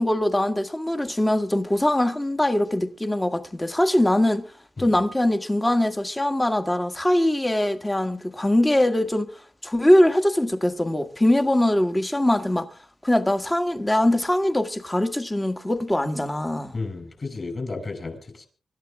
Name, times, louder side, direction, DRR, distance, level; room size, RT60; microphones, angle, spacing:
voice 1, 0.0-4.5 4.8-9.3 9.6-12.7 13.0-16.7, left 1 dB, 10° left, 1.6 m, -22 dB
voice 2, 16.7-18.5, left 3 dB, 35° left, 5.5 m, -33 dB
25.5 x 12.5 x 3.6 m
wide cardioid pair, 125°, 0 cm